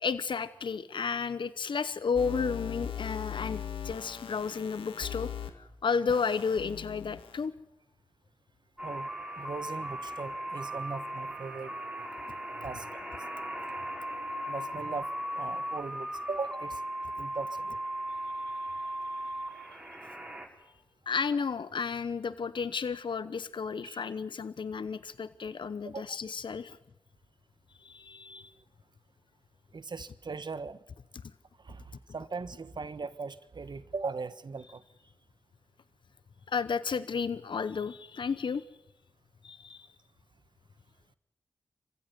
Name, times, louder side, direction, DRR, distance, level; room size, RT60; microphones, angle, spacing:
voice 1, 0.0-7.5 21.1-26.8 27.8-28.5 36.5-38.6 39.4-39.9, left 5 dB, 65° left, 15 dB, 0.9 m, -32 dB
sound 1, 2.1-5.5 6.1-7.4, left 9 dB, 85° left, 2.0 m, -39 dB
sound 2, 8.8-20.5, right 1 dB, 10° right, 6.3 m, -37 dB
voice 2, 9.4-11.7 12.6-13.3 14.5-16.8 17.2-17.8 18.6-18.7 23.8-24.0 25.9-26.2 29.7-30.8 31.6-31.8 32.1-34.8, right 4 dB, 60° right, 14 dB, 1.4 m, -39 dB
26.5 x 15.5 x 9.6 m, 0.91 s
cardioid pair, 45°, 9 cm